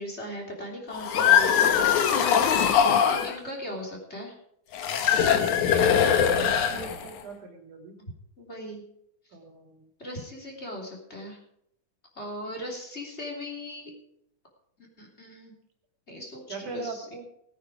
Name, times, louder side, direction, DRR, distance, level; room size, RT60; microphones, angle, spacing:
voice 1, 0.0-1.7 3.1-4.4 8.4-8.8 10.0-11.4 12.1-13.9 14.8-15.5 16.1-17.1, left 1 dB, 20° left, -1 dB, 3.3 m, -38 dB
sound 1, 0.9-3.3 4.7-7.2, left 8 dB, 70° left, 2.5 m, -22 dB
voice 2, 6.2-8.0 9.3-9.9 16.5-17.3, right 3 dB, 65° right, 3 dB, 3.8 m, -39 dB
18.5 x 9.4 x 4.9 m, 0.74 s
omnidirectional pair, 3.8 m